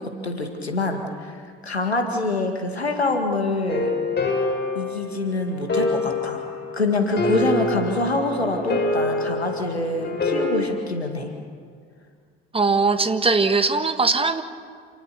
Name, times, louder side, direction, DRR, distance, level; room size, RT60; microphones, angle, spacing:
voice 1, 0.0-3.9 4.7-6.5 6.7-11.3, left 2 dB, 90° left, 4 dB, 2.1 m, -25 dB
sound 1, 3.7-10.6, left 2 dB, 35° left, 4.8 m, -26 dB
voice 2, 12.5-14.4, right 4 dB, 20° right, 9 dB, 1.5 m, -20 dB
28.5 x 18.5 x 6.9 m, 2.1 s
figure-of-eight pair, 60°, 31 cm